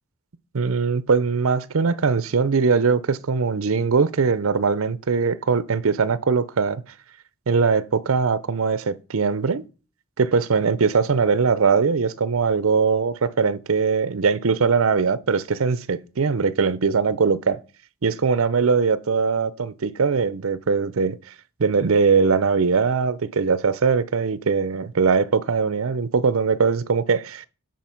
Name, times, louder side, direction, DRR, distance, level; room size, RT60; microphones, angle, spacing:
voice 1, 0.5-6.8 7.5-9.6 10.2-17.6 18.0-21.2 21.6-27.5, right 5 dB, 65° right, 0.6 m, -21 dB
9.3 x 4.4 x 5.8 m
head